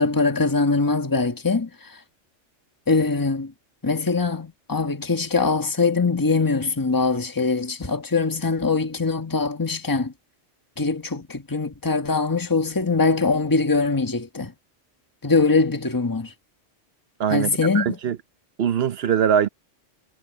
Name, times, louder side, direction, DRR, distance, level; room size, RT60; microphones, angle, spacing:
voice 1, 0.0-2.0 2.9-3.5 3.8-10.1 10.8-14.5 15.2-16.3 17.3-18.0, left 4 dB, 15° left, 1.5 m, -22 dB
voice 2, 17.2-18.2 18.6-19.5, right 8 dB, 60° right, 0.9 m, -22 dB
omnidirectional pair, 1.3 m